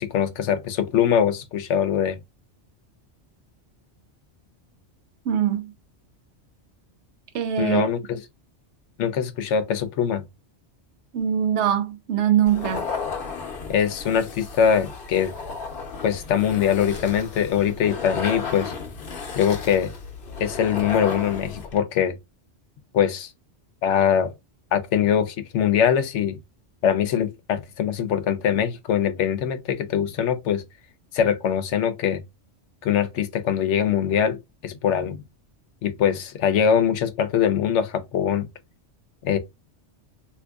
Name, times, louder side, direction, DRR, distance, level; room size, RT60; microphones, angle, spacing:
voice 1, 0.0-2.2 7.6-8.2 9.0-10.2 13.7-15.3 16.0-18.7 19.3-19.9 20.4-22.2 22.9-23.3 23.8-24.3 24.7-26.4 26.8-30.6 31.1-32.2 32.8-35.2 35.8-38.5 39.2-39.4, left 8 dB, 85° left, 0.9 m, -22 dB
voice 2, 5.3-5.7 7.3-7.9 11.1-12.9, right 10 dB, 80° right, 0.9 m, -22 dB
sound 1, 12.5-21.8, left 4 dB, 55° left, 0.9 m, -34 dB
3.6 x 2.8 x 2.3 m
omnidirectional pair, 1.2 m